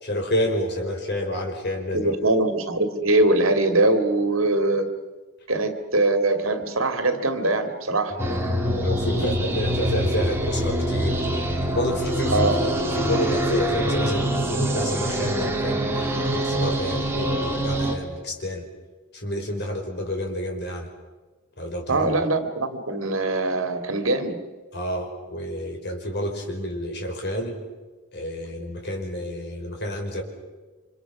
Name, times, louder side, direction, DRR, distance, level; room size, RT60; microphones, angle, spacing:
voice 1, 0.0-2.1 8.2-11.2 11.7-18.6 19.1-20.9 21.6-22.1 24.7-27.6 28.1-30.2, equal, 55° left, 3 dB, 5.1 m, -29 dB
voice 2, 1.9-4.9 5.5-8.2 9.2-9.3 12.3-12.6 21.9-24.4, right 2 dB, 75° right, 7 dB, 2.6 m, -22 dB
sound 1, 8.2-17.9, right 1 dB, 10° right, 3.0 m, -25 dB
29.5 x 26.0 x 6.2 m, 1.3 s
head